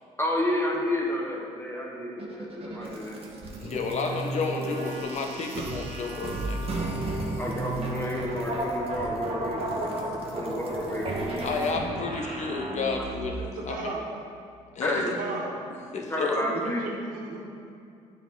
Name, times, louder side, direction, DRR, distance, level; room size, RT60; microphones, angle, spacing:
voice 1, 0.2-3.2 7.4-11.5 11.7-11.8 13.0-13.1 14.8-15.1 15.9-16.8, left 1 dB, 15° left, -2 dB, 1.2 m, -31 dB
sound 1, 2.2-13.4, right 2 dB, 40° right, 1.3 m, -33 dB
voice 2, 3.6-6.9 11.4-13.9 14.7-15.1 15.9-16.4, left 4 dB, 50° left, 2 dB, 1.0 m, -31 dB
voice 3, 13.4-14.1 14.9-15.5 16.4-17.4, right 2 dB, 70° right, -1 dB, 1.5 m, -34 dB
8.7 x 4.6 x 3.9 m, 2.4 s
supercardioid pair, 65°, 15 cm